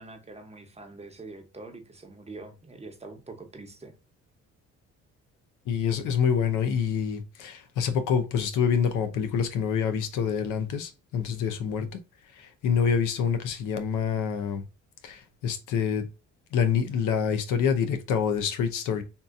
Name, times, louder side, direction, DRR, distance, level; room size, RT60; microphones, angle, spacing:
voice 1, 0.0-3.9, right 3 dB, 20° right, 0.9 m, -44 dB
voice 2, 5.7-11.9 12.3-14.6 15.0-16.1 16.5-19.0, left 7 dB, 90° left, 0.7 m, -26 dB
3.7 x 2.7 x 2.5 m
cardioid pair, 90°, 30 cm